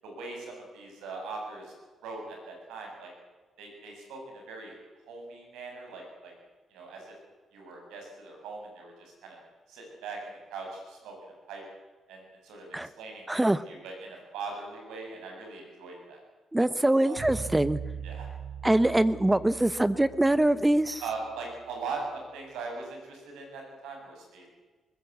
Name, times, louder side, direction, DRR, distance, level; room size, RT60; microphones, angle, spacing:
voice 1, 0.0-1.7 2.0-3.1 3.6-4.8 5.1-6.3 6.7-7.1 7.5-9.4 9.7-11.6 12.1-16.2 17.0-17.2 18.0-18.3 21.0-24.5, right 4 dB, 90° right, 1 dB, 7.8 m, -41 dB
voice 2, 13.3-13.6 16.5-17.8 18.6-21.0, right 1 dB, 15° right, 14 dB, 1.0 m, -23 dB
sound 1, 17.2-21.5, right 6 dB, 55° right, 7.3 m, -41 dB
21.0 x 19.5 x 8.4 m, 1.3 s
supercardioid pair, 65°, 0 cm